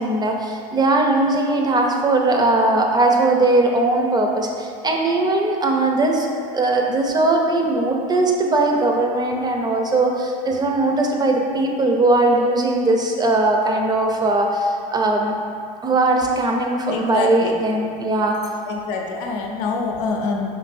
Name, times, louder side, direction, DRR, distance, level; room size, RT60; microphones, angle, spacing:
voice 1, 0.0-15.3 15.8-18.4, right 2 dB, 20° right, 1 dB, 0.6 m, -19 dB
voice 2, 16.9-17.6 18.7-20.5, left 4 dB, 70° left, 1 dB, 0.6 m, -25 dB
5.1 x 3.2 x 2.6 m, 2.3 s
hypercardioid pair, 85°, 19 cm